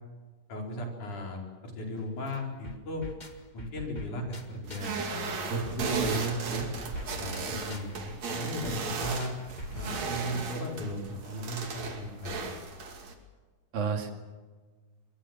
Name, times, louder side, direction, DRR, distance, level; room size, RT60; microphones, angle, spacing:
voice 1, 0.5-3.0 3.5-5.4 5.8-6.6 6.9-7.9 8.4-9.3 9.7-12.5, left 1 dB, 60° left, 1 dB, 6.0 m, -37 dB
sound 1, 2.0-2.1 2.3-5.0 5.3-10.4, left 1 dB, 30° left, 0.7 m, -46 dB
sound 2, 4.6-13.1, right 4 dB, 50° right, 3.6 m, -36 dB
voice 2, 5.5-6.7 13.7-14.1, right 5 dB, 75° right, 5 dB, 4.1 m, -31 dB
24.5 x 22.0 x 7.4 m, 1.4 s
omnidirectional pair, 4.1 m